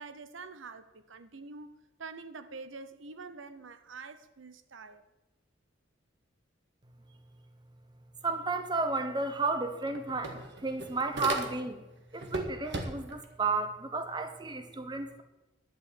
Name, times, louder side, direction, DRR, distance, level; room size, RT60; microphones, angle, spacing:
voice 1, 0.0-5.0, right 4 dB, 75° right, 0.8 m, -46 dB
voice 2, 8.2-11.8 12.1-15.2, right 3 dB, 20° right, 1.0 m, -32 dB
sound 1, 9.2-9.3 9.6-11.9 12.2-13.2, right 2 dB, 60° right, 1.8 m, -37 dB
11.5 x 6.7 x 8.7 m
head